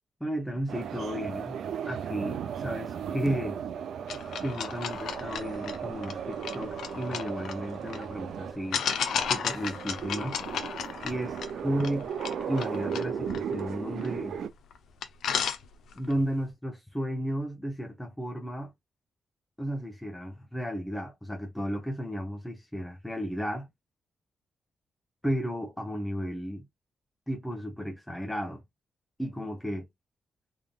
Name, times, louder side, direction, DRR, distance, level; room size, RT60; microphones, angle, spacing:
voice 1, 0.2-1.6 1.9-3.6 4.4-8.8 9.3-10.4 11.0-11.4 11.6-12.0 12.5-14.4 15.9-18.7 19.6-23.7 25.2-26.7 27.3-28.6 29.2-29.9, equal, 5° left, 0.8 m, -33 dB
sound 1, 0.7-14.5, right 7 dB, 80° right, 0.4 m, -36 dB
sound 2, 4.1-8.0 8.7-14.3 14.7-14.8 15.0-16.1, left 7 dB, 90° left, 0.6 m, -34 dB
3.7 x 3.5 x 2.3 m
wide cardioid pair, 145°, 0 cm